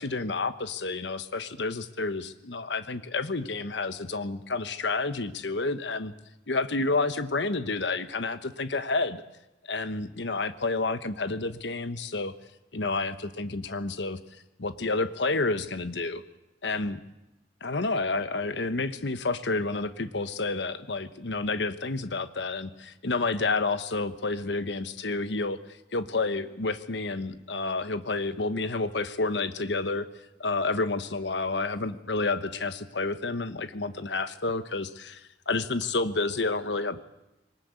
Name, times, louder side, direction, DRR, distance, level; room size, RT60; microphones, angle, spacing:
voice 1, 0.0-6.1 6.5-9.2 9.7-12.3 12.7-14.2 14.6-16.2 16.6-17.0 17.6-25.6 25.9-30.1 30.4-37.0, left 3 dB, 70° left, 12 dB, 1.1 m, -30 dB
22.5 x 19.5 x 8.3 m, 0.94 s
head